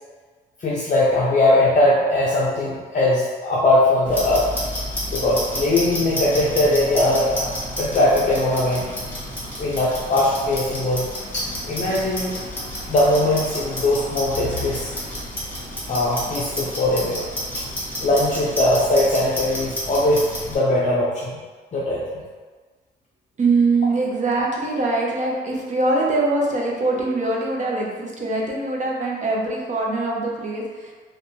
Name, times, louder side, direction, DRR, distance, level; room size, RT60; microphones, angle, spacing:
voice 1, 0.6-4.5 5.1-7.5 7.8-8.8 9.6-11.1 11.3-12.4 12.9-14.9 15.9-17.3 18.0-21.3 21.7-22.0, left 1 dB, 40° left, -7 dB, 0.5 m, -20 dB
Clock, 4.0-20.5, equal, 10° left, 1.1 m, -30 dB
voice 2, 23.4-30.9, right 3 dB, 40° right, -2 dB, 0.6 m, -23 dB
2.6 x 2.3 x 2.6 m, 1.4 s
cardioid pair, 90°, 20 cm